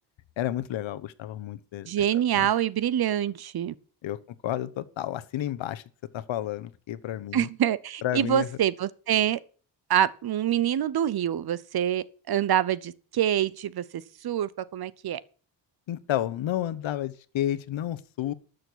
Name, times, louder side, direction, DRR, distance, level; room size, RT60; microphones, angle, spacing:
voice 1, 0.4-1.9 2.3-2.5 4.0-4.2 4.4-5.8 6.1-7.5 8.0-8.5 15.9-18.3, left 12 dB, 80° left, 1.0 m, -31 dB
voice 2, 1.9-3.7 7.3-9.4 9.9-15.2, right 10 dB, 55° right, 0.8 m, -26 dB
12.5 x 6.7 x 6.3 m
wide cardioid pair, 140°, 45 cm